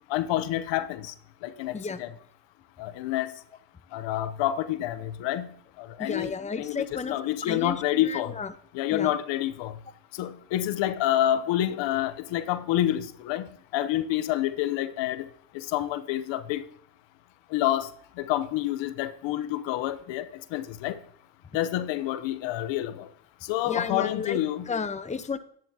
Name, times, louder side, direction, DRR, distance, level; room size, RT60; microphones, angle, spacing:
voice 1, 0.1-1.1 1.4-2.1 2.8-3.3 3.9-5.5 5.8-6.3 6.6-8.3 8.7-9.7 10.2-15.3 15.5-16.6 17.5-17.9 18.2-21.0 21.5-23.1 23.5-24.7, left 13 dB, 80° left, 0.9 m, -28 dB
voice 2, 1.7-2.0 6.0-7.2 7.4-8.5 8.9-9.1 23.6-24.4 24.7-25.4, left 5 dB, 15° left, 0.7 m, -32 dB
10.5 x 10.0 x 2.8 m
supercardioid pair, 70°, 44 cm